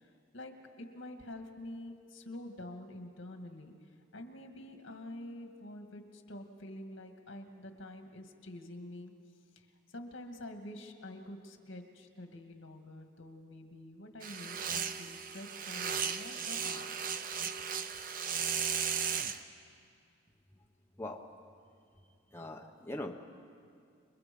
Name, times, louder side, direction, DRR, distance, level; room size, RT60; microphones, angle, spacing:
voice 1, 0.0-3.7 4.1-9.1 9.6-17.2, left 1 dB, 75° left, 5 dB, 2.0 m, -47 dB
sound 1, 14.2-19.4, right 7 dB, 45° right, 0.7 m, -36 dB
voice 2, 22.3-23.1, left 1 dB, 10° left, 1 dB, 1.0 m, -41 dB
28.5 x 22.5 x 5.4 m, 2.3 s
head